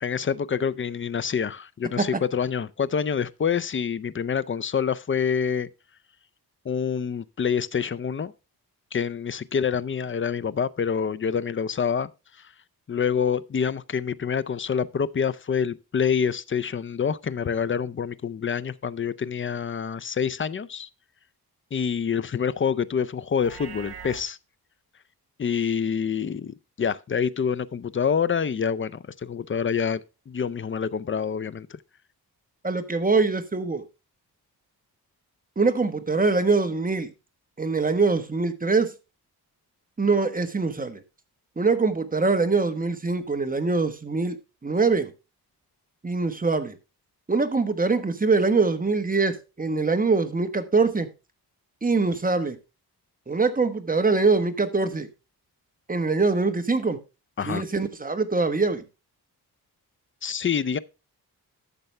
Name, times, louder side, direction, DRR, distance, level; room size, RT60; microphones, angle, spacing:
voice 1, 0.0-5.7 6.6-8.3 8.9-12.1 12.9-20.9 21.7-24.4 25.4-30.0 30.3-31.8 57.4-57.6 60.2-60.8, left 7 dB, 30° left, 0.5 m, -26 dB
Livestock farm animals working animals, 23.3-24.2, right 6 dB, 80° right, 1.8 m, -41 dB
voice 2, 32.6-33.8 35.6-37.1 37.6-38.9 40.0-41.0 41.6-44.4 44.6-45.1 46.0-46.8 47.3-51.1 51.8-52.6 53.3-55.1 55.9-57.0 57.4-58.8, right 4 dB, 20° right, 1.2 m, -23 dB
12.0 x 6.8 x 3.3 m
wide cardioid pair, 110°, 39 cm